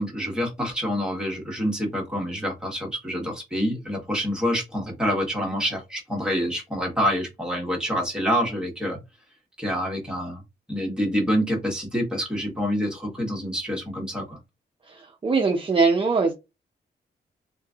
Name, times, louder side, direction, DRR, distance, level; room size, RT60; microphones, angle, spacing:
voice 1, 0.0-9.0 9.6-10.4 10.7-14.4, equal, 5° right, 1.2 m, -27 dB
voice 2, 14.8-16.3, right 4 dB, 30° right, 0.5 m, -22 dB
3.1 x 2.6 x 2.4 m
wide cardioid pair, 105°, 18 cm